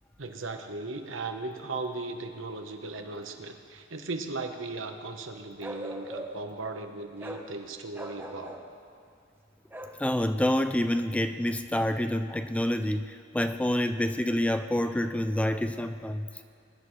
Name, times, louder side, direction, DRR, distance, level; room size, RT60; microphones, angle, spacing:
voice 1, 0.2-8.6, right 3 dB, 70° right, 5 dB, 1.1 m, -37 dB
Bark, 5.6-6.5 7.2-7.5 7.9-8.7 9.7-10.0, equal, 10° right, 1.0 m, -40 dB
voice 2, 10.0-16.3, left 1 dB, 5° left, 9 dB, 0.3 m, -27 dB
22.0 x 11.0 x 3.2 m, 2.3 s
head